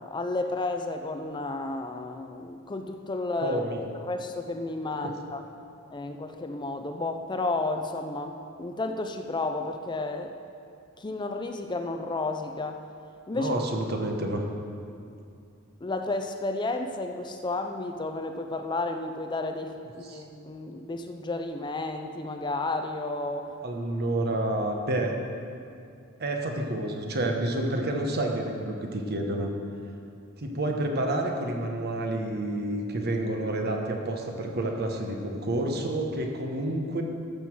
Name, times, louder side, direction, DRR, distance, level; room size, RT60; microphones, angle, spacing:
voice 1, 0.0-3.6 3.9-5.4 5.9-10.3 11.0-12.8 13.3-13.5 15.8-19.8 20.1-23.5, left 2 dB, 20° left, 5 dB, 0.5 m, -32 dB
voice 2, 3.4-3.8 13.3-14.4 20.0-20.2 23.6-25.1 26.2-29.5 30.4-37.0, right 1 dB, 50° right, 2 dB, 1.1 m, -29 dB
13.5 x 5.5 x 6.2 m, 2.5 s
head